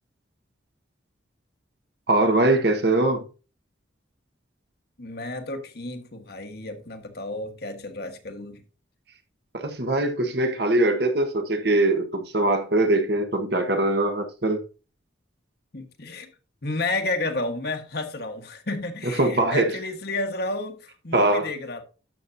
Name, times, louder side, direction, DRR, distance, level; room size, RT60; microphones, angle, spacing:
voice 1, 2.1-3.2 9.5-14.6 19.2-19.7 21.1-21.5, right 2 dB, 55° right, 1.4 m, -22 dB
voice 2, 5.0-8.6 15.7-16.3 16.6-21.8, left 2 dB, 55° left, 1.5 m, -31 dB
12.0 x 7.0 x 2.7 m
head